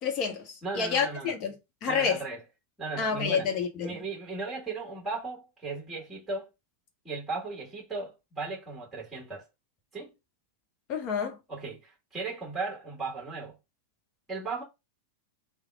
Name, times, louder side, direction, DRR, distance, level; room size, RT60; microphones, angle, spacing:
voice 1, 0.0-1.5 1.8-2.2 3.0-4.0 10.9-11.4, left 6 dB, 40° left, 1.0 m, -29 dB
voice 2, 0.6-1.3 1.9-2.4 2.8-3.5 3.8-6.5 7.0-9.5 9.9-10.1 11.5-13.6 14.3-14.6, right 3 dB, 5° right, 1.9 m, -36 dB
3.4 x 2.3 x 3.5 m
figure-of-eight pair, 90°, 0 cm